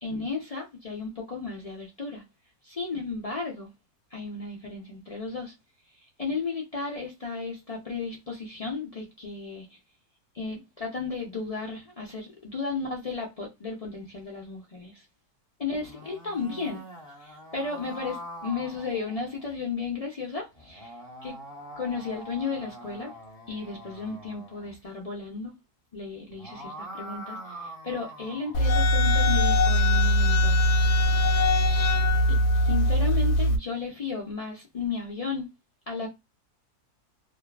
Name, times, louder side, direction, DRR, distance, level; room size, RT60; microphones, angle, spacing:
voice 1, 0.0-2.2 2.7-3.7 4.1-5.5 5.9-9.8 10.3-15.0 15.6-16.8 17.2-21.0 21.2-21.3 21.8-23.1 23.5-25.5 25.9-30.6 31.5-31.8 32.3-35.5 35.9-36.1, left 4 dB, 60° left, 0.3 m, -34 dB
sound 1, 15.7-19.6 20.5-24.8 26.2-28.7, equal, 5° left, 0.9 m, -43 dB
sound 2, 28.5-33.6, left 1 dB, 85° left, 1.1 m, -21 dB
2.7 x 2.3 x 2.2 m
omnidirectional pair, 1.6 m